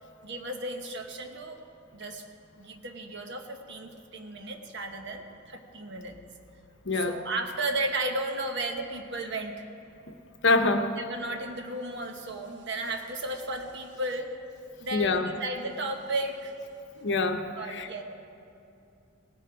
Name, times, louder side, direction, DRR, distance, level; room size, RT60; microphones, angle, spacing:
voice 1, 0.2-1.6 1.9-2.2 2.6-6.2 6.9-9.6 11.0-14.3 14.8-16.5 17.5-18.0, right 2 dB, 60° right, 4 dB, 1.1 m, -34 dB
voice 2, 10.4-10.9 14.9-15.3 17.0-17.9, left 3 dB, 60° left, 7 dB, 0.8 m, -25 dB
17.5 x 9.8 x 4.7 m, 2.7 s
head